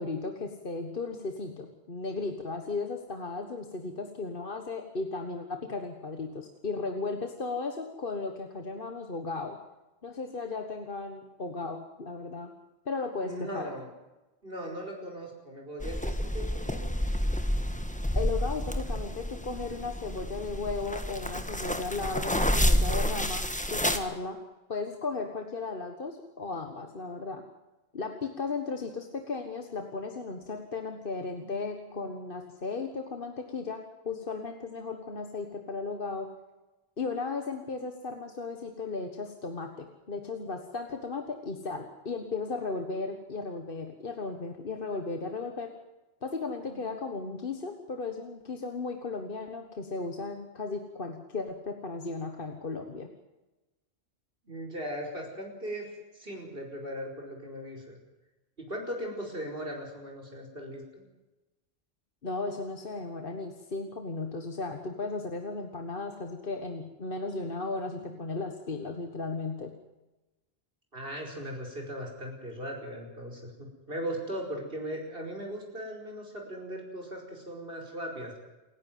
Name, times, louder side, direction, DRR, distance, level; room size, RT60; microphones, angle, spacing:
voice 1, 0.0-9.6 10.0-12.5 12.8-13.7 18.1-24.4 24.7-27.4 27.9-36.3 37.0-45.8 46.2-53.1 62.2-69.7, left 3 dB, 60° left, 5 dB, 1.7 m, -35 dB
voice 2, 13.2-13.9 14.4-16.9 54.5-58.0 58.6-61.0 70.9-78.4, equal, 65° right, 0 dB, 5.4 m, -38 dB
sound 1, 15.8-24.0, equal, 5° left, 1.5 m, -29 dB
28.5 x 11.0 x 9.4 m, 1.1 s
omnidirectional pair, 1.0 m